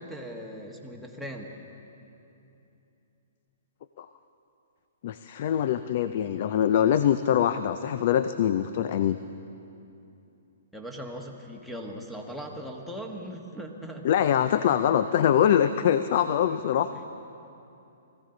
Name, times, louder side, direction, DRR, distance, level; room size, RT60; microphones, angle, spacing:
voice 1, 0.0-1.5 10.7-14.2 14.7-14.8 16.9-17.0, equal, 5° left, 1 dB, 1.3 m, -39 dB
voice 2, 5.0-9.2 14.0-16.9, left 9 dB, 55° left, 12 dB, 0.4 m, -23 dB
21.0 x 15.0 x 3.9 m, 2.8 s
hypercardioid pair, 135°, 0 cm